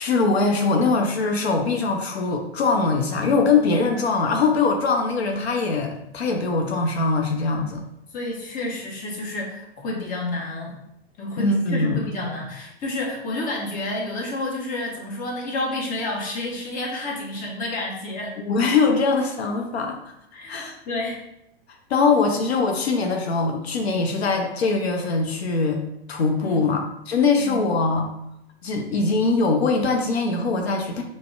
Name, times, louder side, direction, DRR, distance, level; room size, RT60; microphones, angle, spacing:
voice 1, 0.0-7.8 11.4-12.1 18.4-20.0 20.5-20.7 21.9-25.8 26.1-28.1 28.6-31.0, left 4 dB, 80° left, 3 dB, 0.5 m, -22 dB
voice 2, 8.1-10.7 11.2-18.4 20.3-21.2 26.4-26.7 27.4-27.6, left 2 dB, 25° left, -2 dB, 0.9 m, -30 dB
4.9 x 2.0 x 2.3 m, 0.80 s
hypercardioid pair, 105°, 31 cm